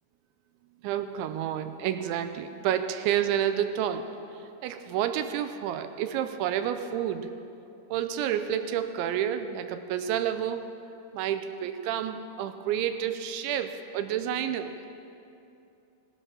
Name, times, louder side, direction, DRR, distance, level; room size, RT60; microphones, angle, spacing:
voice 1, 0.8-4.1 4.3-7.3 7.9-10.7 11.1-14.9, right 10 dB, 85° right, 9 dB, 3.0 m, -30 dB
18.5 x 12.0 x 5.8 m, 2.7 s
omnidirectional pair, 5.3 m